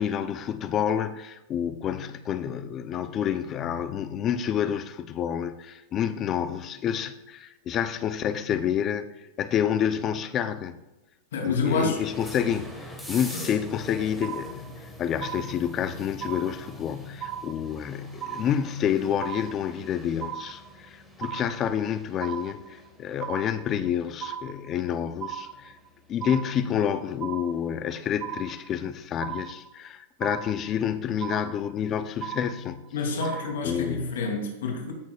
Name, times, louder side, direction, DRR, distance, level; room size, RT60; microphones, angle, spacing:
voice 1, 0.0-9.1 9.4-10.8 11.4-25.8 26.1-32.8 33.6-34.2, left 9 dB, 30° left, 0.6 m, -29 dB
voice 2, 11.3-12.0 13.3-13.5 32.9-34.9, left 4 dB, 85° left, 2.8 m, -28 dB
sound 1, 11.9-28.7, equal, ahead, 1.6 m, -45 dB
sound 2, 14.2-14.9 15.2-15.9 16.2-16.9 17.2-17.9 18.2-18.9 19.2-19.9 20.2-20.9 21.2-21.9 22.2-22.9 23.2-23.9 24.2-24.9 25.2-25.9 26.2-26.9 27.2-27.9 28.2-28.9 29.2-29.9 30.2-30.9 31.2-31.9 32.2-32.9 33.2-33.9, right 10 dB, 35° right, 0.4 m, -37 dB
15.0 x 6.5 x 2.4 m
supercardioid pair, 135°, 0 cm